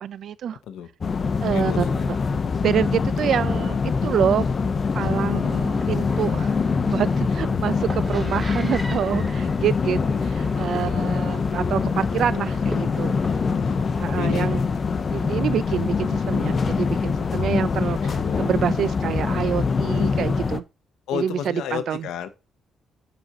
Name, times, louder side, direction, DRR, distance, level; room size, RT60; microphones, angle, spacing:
voice 1, 0.0-0.6 1.4-3.8 4.0-4.5 4.9-6.5 6.9-13.1 14.0-14.6 15.1-20.6 21.1-22.1, right 9 dB, 65° right, 0.4 m, -27 dB
sound 1, 1.0-20.6, left 5 dB, 40° left, 0.6 m, -24 dB
voice 2, 1.5-1.9 13.5-14.5 18.0-18.8 21.1-22.3, left 9 dB, 85° left, 0.7 m, -32 dB
sound 2, 5.6-13.6, right 1 dB, 20° right, 2.3 m, -39 dB
5.5 x 4.3 x 5.8 m
cardioid pair, 90°, 0 cm